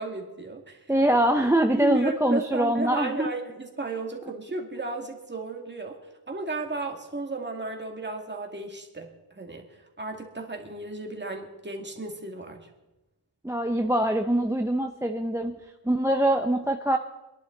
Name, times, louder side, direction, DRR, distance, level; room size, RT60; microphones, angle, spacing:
voice 1, 0.0-0.8 1.7-6.0 6.3-9.1 9.3-9.6 10.0-12.6, right 2 dB, 25° right, 2 dB, 2.2 m, -33 dB
voice 2, 0.9-3.3 13.4-15.6 15.8-17.0, right 1 dB, 5° right, 6 dB, 0.7 m, -23 dB
25.5 x 11.0 x 3.9 m, 1.0 s
wide cardioid pair, 120°, 41 cm